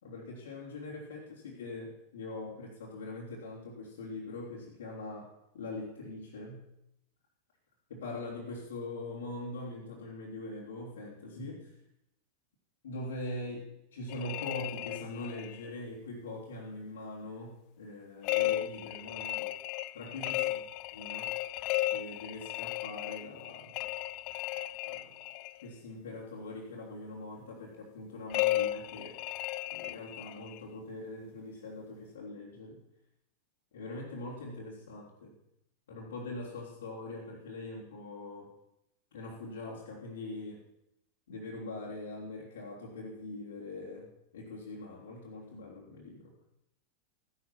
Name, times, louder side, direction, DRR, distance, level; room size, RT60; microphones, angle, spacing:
voice 1, 0.0-6.6 7.9-11.8 12.8-19.6 19.9-20.5 20.9-21.4 21.9-23.8 24.9-25.2 25.6-29.2 29.7-32.8 33.7-35.4 35.9-38.5 39.1-40.7 41.3-46.4, left 2 dB, 60° left, -5 dB, 3.6 m, -42 dB
sound 1, 14.1-15.7 18.2-25.6 28.3-30.6, left 16 dB, 45° left, 0.5 m, -35 dB
16.0 x 11.0 x 6.2 m, 0.82 s
figure-of-eight pair, 90°, 0 cm